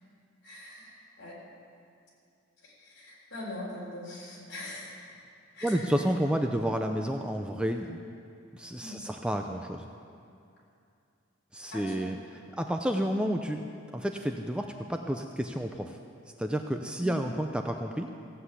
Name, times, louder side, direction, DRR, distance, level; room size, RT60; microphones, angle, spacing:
voice 1, 0.4-1.4 2.6-5.0 5.5-6.0 8.8-9.0 11.7-12.0 17.0-17.2, left 1 dB, 55° left, -4 dB, 4.0 m, -42 dB
voice 2, 5.6-8.0 8.5-9.8 11.5-12.2 12.6-13.6 13.9-16.0 16.4-18.1, equal, 5° right, 4 dB, 0.5 m, -30 dB
16.0 x 7.8 x 8.3 m, 2.5 s
head